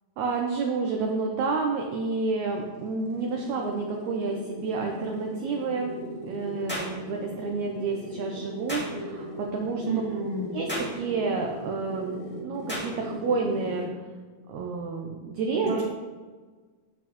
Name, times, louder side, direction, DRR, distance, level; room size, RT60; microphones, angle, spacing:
voice 1, 0.2-6.0 6.2-9.8 10.5-13.9 14.5-15.8, right 4 dB, 75° right, 1 dB, 1.7 m, -29 dB
sound 1, 2.2-14.0, equal, 75° left, 4.7 m, -39 dB
sound 2, 6.7-7.0 8.7-8.9 10.7-11.0 12.7-12.9, equal, 10° left, 0.5 m, -33 dB
voice 2, 9.9-10.6 15.6-15.8, right 4 dB, 20° right, -6 dB, 1.5 m, -30 dB
8.9 x 8.3 x 3.0 m, 1.4 s
omnidirectional pair, 4.2 m